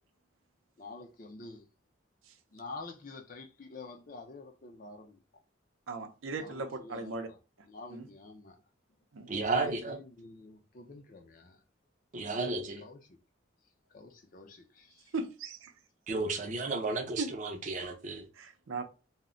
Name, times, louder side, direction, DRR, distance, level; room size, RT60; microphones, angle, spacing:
voice 1, 0.8-1.7 2.5-5.2 6.4-7.2 7.7-8.6 9.4-11.6 12.8-13.0 13.9-15.1, left 3 dB, 40° left, 0.5 m, -48 dB
voice 2, 5.9-7.3 7.9-8.1 9.1-9.3 15.1-15.7 17.2-17.3 18.4-18.8, right 3 dB, 85° right, 0.5 m, -37 dB
voice 3, 9.3-10.0 12.1-12.8 16.1-18.3, right 3 dB, 40° right, 0.5 m, -33 dB
2.1 x 2.1 x 3.7 m
head